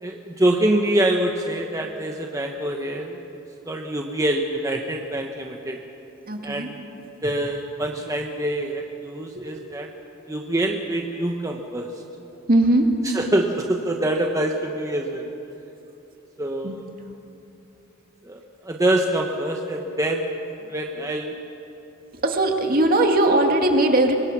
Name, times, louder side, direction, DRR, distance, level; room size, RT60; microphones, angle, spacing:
voice 1, 0.0-3.2 3.7-5.8 6.4-6.8 7.2-9.9 10.3-11.9 13.1-15.3 16.4-16.8 18.2-18.4 18.6-20.4 20.7-21.3, right 1 dB, 15° right, 1 dB, 1.1 m, -25 dB
voice 2, 6.3-6.7 9.3-9.5 12.5-12.9 16.6-16.8 22.2-24.1, right 1 dB, 45° right, 3 dB, 2.1 m, -19 dB
24.5 x 22.0 x 6.2 m, 3.0 s
head